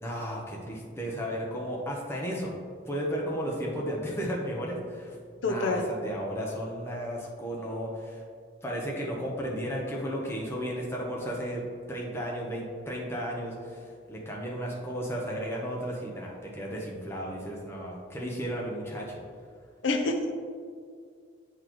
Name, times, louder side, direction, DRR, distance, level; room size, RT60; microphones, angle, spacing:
voice 1, 0.0-2.5 2.9-8.2 8.6-11.6 11.9-19.2, equal, 15° left, -3 dB, 0.9 m, -34 dB
voice 2, 5.4-5.9 19.8-20.3, left 2 dB, 85° left, 4 dB, 0.6 m, -27 dB
8.5 x 4.1 x 3.0 m, 2.1 s
head